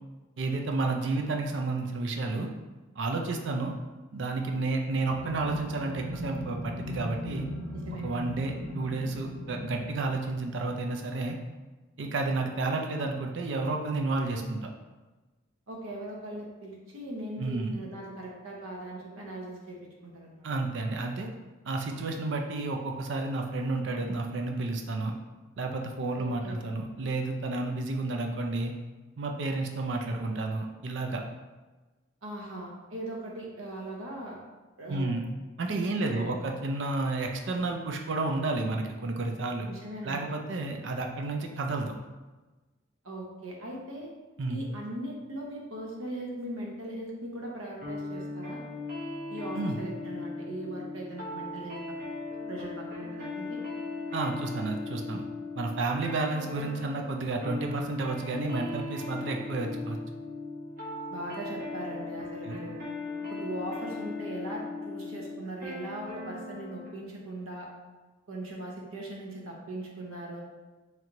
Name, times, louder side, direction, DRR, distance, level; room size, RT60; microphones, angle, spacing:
voice 1, 0.4-2.5 3.0-3.7 4.1-7.5 8.0-11.4 12.0-14.7 17.4-17.8 20.4-21.3 21.7-25.1 25.6-28.7 29.2-31.2 34.9-35.2 35.6-39.7 40.0-41.9 44.4-44.6 49.5-49.8 54.1-55.2 55.6-60.0 62.4-62.6, right 3 dB, 65° right, 3 dB, 0.4 m, -31 dB
sound 1, 5.0-10.7, left 1 dB, 60° left, 0.6 m, -39 dB
voice 2, 7.7-8.0 15.7-20.5 26.2-26.6 32.2-34.4 34.8-35.1 35.9-36.3 39.6-40.3 43.0-44.1 44.5-48.6 49.3-52.0 52.3-53.6 61.1-62.8 63.3-67.7 68.3-70.4, right 1 dB, 85° right, -2 dB, 0.8 m, -39 dB
sound 2, 47.8-66.9, left 3 dB, 45° right, 1.1 m, -38 dB
3.2 x 3.0 x 3.7 m, 1.2 s
head